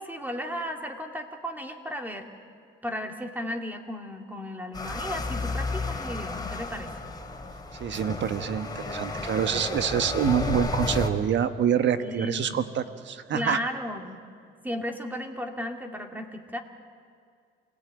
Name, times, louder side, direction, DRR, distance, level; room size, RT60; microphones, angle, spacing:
voice 1, 0.0-2.3 2.8-6.9 12.0-12.6 13.3-14.2 14.6-16.6, equal, 10° right, 3 dB, 2.7 m, -35 dB
sound 1, 4.7-11.1, left 3 dB, 20° left, 2.8 m, -32 dB
voice 2, 7.8-13.6, right 8 dB, 65° right, 9 dB, 1.4 m, -26 dB
27.5 x 17.5 x 9.0 m, 2.2 s
cardioid pair, 90°, 20 cm